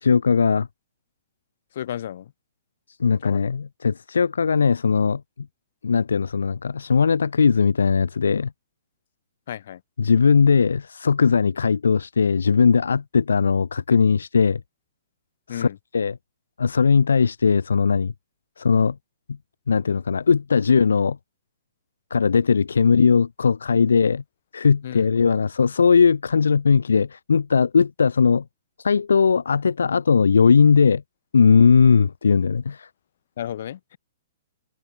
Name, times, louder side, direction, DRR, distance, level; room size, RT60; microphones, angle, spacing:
voice 1, 0.0-0.7 3.0-5.2 5.8-8.5 10.0-14.6 15.5-15.7 15.9-16.2 16.6-18.1 18.6-19.0 19.7-21.2 22.1-24.2 24.5-28.4 28.8-31.0 31.3-32.9, left 5 dB, 85° left, 0.5 m, -19 dB
voice 2, 1.7-2.3 3.2-3.5 9.5-9.8 15.5-15.8 24.8-25.1 33.4-33.8, left 10 dB, 60° left, 4.5 m, -33 dB
hypercardioid pair, 135°, 0 cm